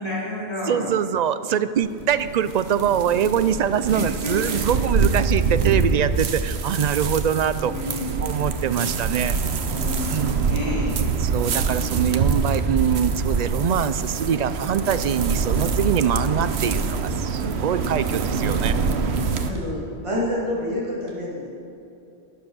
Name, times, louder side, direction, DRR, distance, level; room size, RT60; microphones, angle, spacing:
voice 1, 0.0-0.9 3.9-4.8 7.6-8.1 9.6-11.0 19.0-19.5, left 2 dB, 25° left, -8 dB, 3.9 m, -31 dB
voice 2, 0.7-7.7 8.2-9.4 10.1-10.5 11.3-18.8, right 8 dB, 55° right, 13 dB, 0.5 m, -23 dB
sound 1, 1.8-19.5, right 5 dB, 85° right, 1.1 m, -25 dB
voice 3, 19.5-21.5, left 1 dB, 30° right, -5 dB, 2.3 m, -27 dB
12.5 x 10.0 x 6.3 m, 2.7 s
omnidirectional pair, 1.1 m